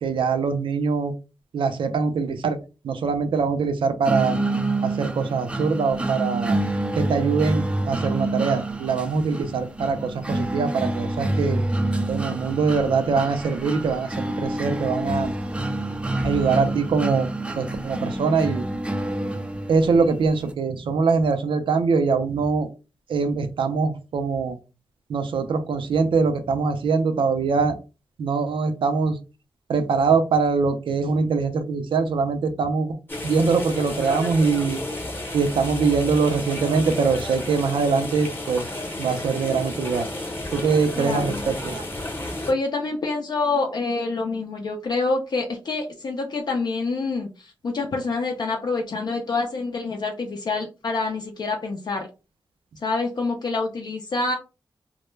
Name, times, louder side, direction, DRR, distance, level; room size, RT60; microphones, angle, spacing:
voice 1, 0.0-1.1 1.5-2.6 2.8-4.4 4.8-6.6 7.0-11.6 12.1-15.3 16.2-17.3 17.6-18.6 19.7-22.7 23.1-24.6 25.1-27.7 28.2-29.2 29.7-32.9 33.2-34.8 35.3-38.6 39.0-40.1 40.5-41.8, right 5 dB, 85° right, 8 dB, 0.4 m, -23 dB
sound 1, 4.1-20.0, right 1 dB, 15° right, 0.3 m, -27 dB
sound 2, 33.1-42.5, left 1 dB, 25° left, 0.8 m, -32 dB
voice 2, 40.9-41.5 42.1-42.2 42.5-52.1 52.8-54.3, left 3 dB, 55° left, 1 dB, 0.4 m, -27 dB
2.2 x 2.1 x 3.0 m, 0.31 s
wide cardioid pair, 95°, 8 cm